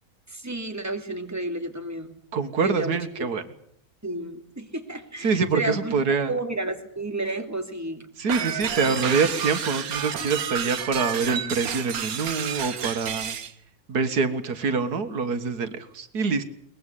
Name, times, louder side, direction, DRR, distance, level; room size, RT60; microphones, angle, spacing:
voice 1, 0.3-2.1 2.6-3.3 4.0-6.0 6.3-8.1 8.4-9.1, right 2 dB, 10° right, 5 dB, 2.4 m, -32 dB
voice 2, 2.3-3.4 5.2-6.4 8.2-13.4 13.9-16.4, right 4 dB, 85° right, 10 dB, 2.0 m, -25 dB
sound 1, 8.3-13.5, right 8 dB, 70° right, 1.6 m, -30 dB
22.5 x 20.5 x 8.3 m, 0.67 s
omnidirectional pair, 1.6 m